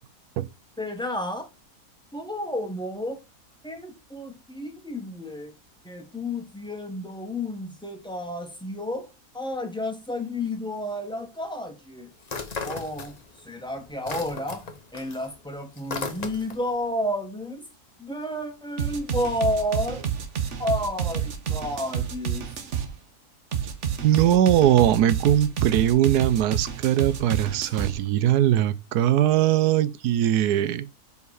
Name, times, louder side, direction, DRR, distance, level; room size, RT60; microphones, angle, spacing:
voice 1, 0.8-1.5 2.1-3.2 3.6-5.5 5.8-9.1 9.3-12.1 12.6-13.2 13.4-17.6 18.0-20.1 20.6-22.5, left 1 dB, 5° left, 0.9 m, -31 dB
sound 1, 12.2-13.5 13.8-16.7, left 4 dB, 35° left, 0.7 m, -35 dB
sound 2, 18.8-22.9 23.5-27.9, right 8 dB, 55° right, 1.2 m, -29 dB
voice 2, 24.0-30.9, right 12 dB, 85° right, 1.2 m, -21 dB
5.4 x 4.8 x 4.7 m
omnidirectional pair, 1.7 m